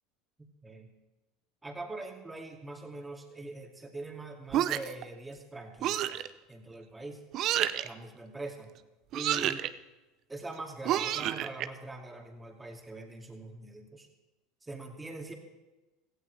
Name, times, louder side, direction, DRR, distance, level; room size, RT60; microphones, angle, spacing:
voice 1, 1.6-6.2 6.5-7.2 7.8-8.8 9.1-9.7 10.3-14.1 14.6-15.3, right 2 dB, 15° right, 2 dB, 2.5 m, -43 dB
sound 1, 4.5-5.0 5.8-6.3 7.3-7.9 9.1-9.7 10.8-11.7, right 12 dB, 50° right, 0.6 m, -29 dB
17.0 x 15.5 x 3.4 m, 1.1 s
hypercardioid pair, 80°, 0 cm